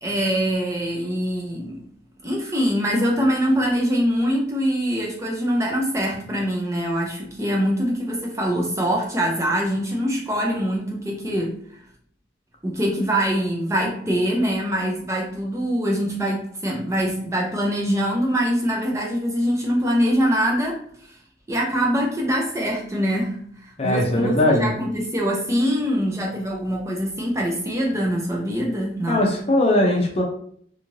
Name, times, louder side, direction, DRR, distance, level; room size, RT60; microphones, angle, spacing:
voice 1, 0.0-1.8 2.2-11.5 12.6-20.8 21.5-29.2, equal, 15° right, -2 dB, 0.5 m, -23 dB
voice 2, 23.8-24.7 29.1-30.2, left 1 dB, 35° left, 1 dB, 0.6 m, -19 dB
2.6 x 2.4 x 3.1 m, 0.62 s
head